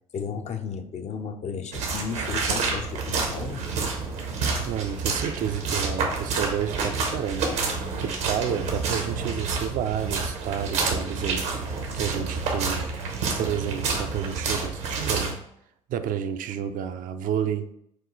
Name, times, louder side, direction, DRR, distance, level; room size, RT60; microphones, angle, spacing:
voice 1, 0.1-3.6, left 6 dB, 45° left, 8 dB, 0.5 m, -34 dB
sound 1, 1.7-15.3, right 4 dB, 80° right, 0.9 m, -28 dB
voice 2, 4.6-11.4 11.9-12.9 13.4-15.4 15.9-17.7, right 9 dB, 60° right, 9 dB, 0.4 m, -30 dB
6.1 x 2.3 x 3.0 m, 0.73 s
hypercardioid pair, 55°, 16 cm